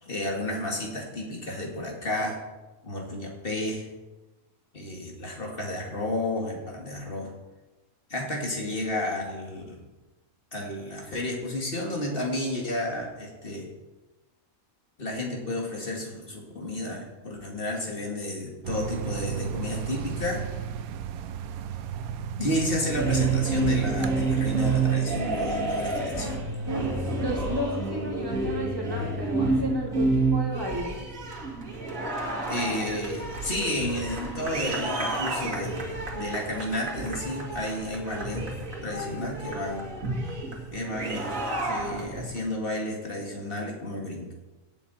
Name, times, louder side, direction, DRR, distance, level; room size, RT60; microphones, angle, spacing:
voice 1, 0.0-2.4 2.8-3.9 4.7-7.3 8.1-9.8 10.5-13.7 15.0-20.5 22.1-26.4 32.5-38.5 38.8-39.9 40.7-41.3 41.6-44.3, left 1 dB, 40° left, 0 dB, 2.5 m, -32 dB
sound 1, 18.6-25.0, right 8 dB, 80° right, 1.1 m, -34 dB
sound 2, 22.8-42.4, right 3 dB, 65° right, 2.3 m, -29 dB
voice 2, 26.7-31.0, equal, 15° right, -2 dB, 2.5 m, -33 dB
17.5 x 8.1 x 4.3 m, 1.1 s
omnidirectional pair, 1.5 m